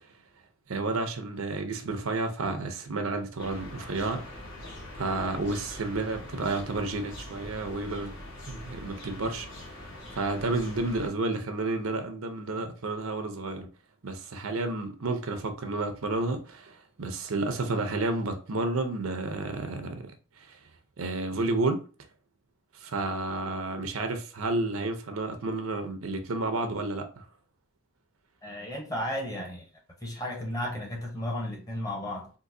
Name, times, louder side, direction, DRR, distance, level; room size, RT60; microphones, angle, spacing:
voice 1, 0.7-4.4 5.0-8.1 8.5-9.5 10.1-13.7 14.0-20.1 20.5-20.6 21.0-21.8 22.8-27.2, right 2 dB, 85° right, 0.6 m, -31 dB
sound 1, 3.4-11.1, left 1 dB, 60° left, 1.1 m, -43 dB
voice 2, 28.4-29.7 30.0-32.3, left 1 dB, 15° left, 0.8 m, -34 dB
3.8 x 2.6 x 2.6 m
head